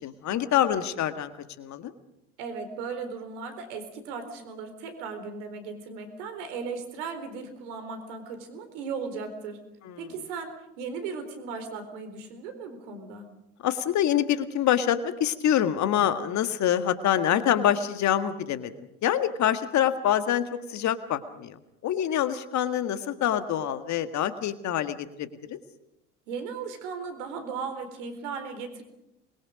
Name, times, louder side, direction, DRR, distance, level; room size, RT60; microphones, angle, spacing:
voice 1, 0.0-1.3 1.6-1.9 9.9-10.0 13.6-18.7 19.0-21.6 21.8-25.6, left 10 dB, 50° left, 10 dB, 1.8 m, -26 dB
voice 2, 2.4-9.6 10.0-13.3 26.3-28.8, right 5 dB, 70° right, 7 dB, 4.2 m, -37 dB
27.0 x 22.0 x 5.2 m, 0.84 s
hypercardioid pair, 70°, 37 cm